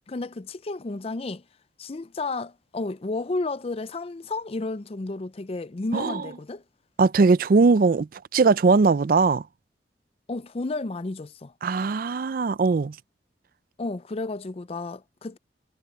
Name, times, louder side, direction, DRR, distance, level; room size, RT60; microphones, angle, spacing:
voice 1, 0.1-1.4 1.8-6.6 10.3-11.5 13.8-15.4, left 3 dB, 35° left, 0.5 m, -32 dB
voice 2, 7.0-9.4 11.6-12.9, right 4 dB, 55° right, 0.4 m, -20 dB
head